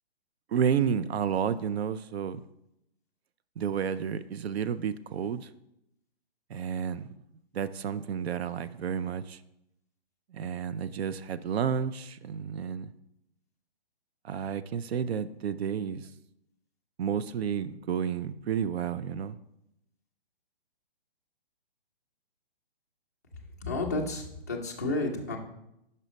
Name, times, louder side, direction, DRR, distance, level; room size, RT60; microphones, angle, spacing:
voice 1, 0.5-2.4 3.6-5.5 6.5-7.1 7.5-9.4 10.3-12.9 14.2-16.0 17.0-19.4, right 7 dB, 85° right, 0.5 m, -31 dB
voice 2, 23.6-25.4, left 2 dB, 20° left, 0.3 m, -31 dB
5.5 x 5.0 x 4.0 m
hypercardioid pair, 160°, 31 cm